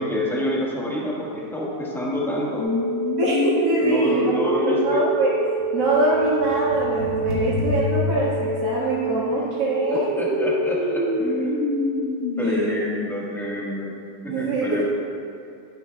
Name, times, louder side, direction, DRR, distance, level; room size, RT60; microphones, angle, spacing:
voice 1, 0.0-2.7 3.8-5.0 9.9-11.6 12.4-13.9 14.2-14.8, equal, ahead, -5 dB, 1.4 m, -27 dB
sound 1, 2.6-12.6, equal, 75° left, 2.5 m, -25 dB
voice 2, 3.2-4.3 4.7-5.3 5.7-10.2 12.4-12.7 14.3-14.8, right 1 dB, 70° right, -9 dB, 2.3 m, -24 dB
12.5 x 11.0 x 2.3 m, 2.5 s
omnidirectional pair, 1.9 m